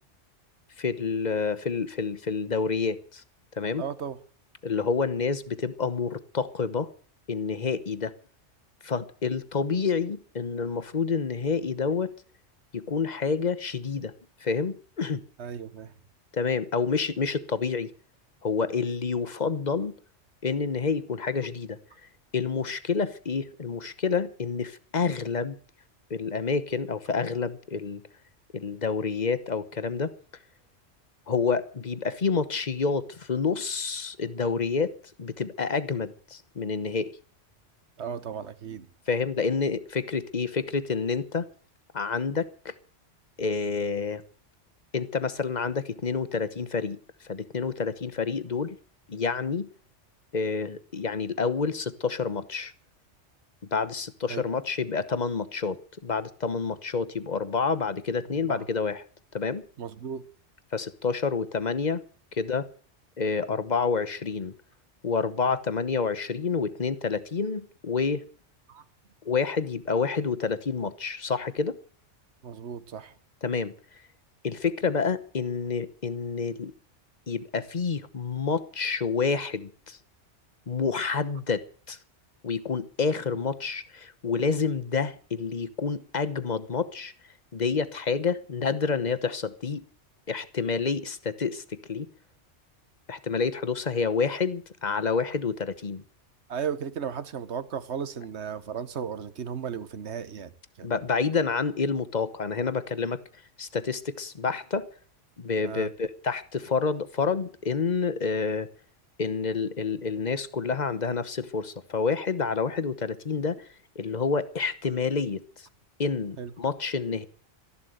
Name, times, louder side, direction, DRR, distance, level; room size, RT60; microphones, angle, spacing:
voice 1, 0.8-3.2 3.6-3.8 4.6-6.9 7.3-8.1 8.8-12.1 12.7-14.1 14.4-15.2 16.3-17.9 18.4-19.9 20.4-21.8 22.3-25.6 26.1-28.0 28.5-30.1 31.3-34.9 35.2-37.2 39.1-41.5 41.9-42.7 43.4-44.2 44.9-47.0 47.2-48.8 49.1-49.7 50.3-52.7 53.7-59.0 59.3-59.6 60.7-62.0 62.3-62.7 63.2-64.5 65.0-68.2 69.2-71.8 73.4-73.7 74.4-76.7 77.3-80.0 80.7-82.0 82.4-87.1 87.5-89.8 90.3-92.1 93.1-96.0 100.8-103.2 103.6-104.9 105.4-108.7 109.2-113.7 113.9-115.7 116.0-117.2, left 5 dB, 40° left, 1.1 m, -28 dB
voice 2, 3.8-4.2 15.4-15.9 38.0-38.9 54.3-54.4 58.4-58.6 59.8-60.2 68.7-68.8 72.4-73.1 96.5-100.5 100.8-101.0 105.6-105.9 116.4-116.5, right 7 dB, 65° right, 1.4 m, -35 dB
14.0 x 11.5 x 7.9 m
omnidirectional pair, 1.2 m